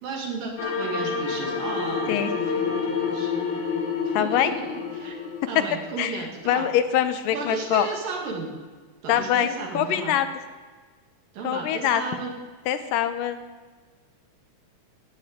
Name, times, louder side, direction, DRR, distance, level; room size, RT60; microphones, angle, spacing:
voice 1, 0.0-3.3 4.2-5.2 5.5-6.7 7.3-8.5 9.0-10.2 11.3-12.4, right 4 dB, 80° right, -1 dB, 4.0 m, -34 dB
sound 1, 0.6-5.9, left 5 dB, 65° left, 1.1 m, -28 dB
voice 2, 4.1-4.5 6.0-7.9 9.1-10.3 11.4-12.0 12.7-13.4, left 10 dB, 85° left, 10 dB, 2.4 m, -24 dB
14.0 x 6.1 x 8.8 m, 1.4 s
omnidirectional pair, 3.9 m